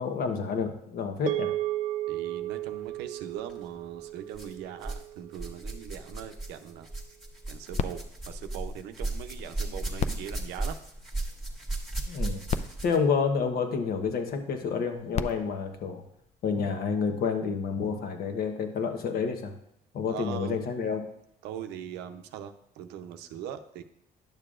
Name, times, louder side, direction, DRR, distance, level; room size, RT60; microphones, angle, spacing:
voice 1, 0.0-1.5 12.1-12.4 12.8-16.0 16.4-19.5 19.9-21.0, left 5 dB, 65° left, 6 dB, 1.0 m, -29 dB
sound 1, 1.3-5.8, right 14 dB, 45° right, 0.4 m, -34 dB
voice 2, 2.1-6.9 7.5-10.8 20.1-20.7 21.4-23.8, right 10 dB, 90° right, 8 dB, 0.6 m, -41 dB
sound 2, 3.4-3.6 4.3-5.1 5.3-13.1 14.1-14.2 15.0-15.1, right 2 dB, ahead, 1.5 m, -36 dB
sound 3, 7.7-9.4 9.9-11.5 12.2-12.3 12.5-14.1 14.9-16.7 17.4-17.5, left 6 dB, 40° left, 0.4 m, -37 dB
10.5 x 6.7 x 2.5 m, 0.78 s
cardioid pair, 110°, 17 cm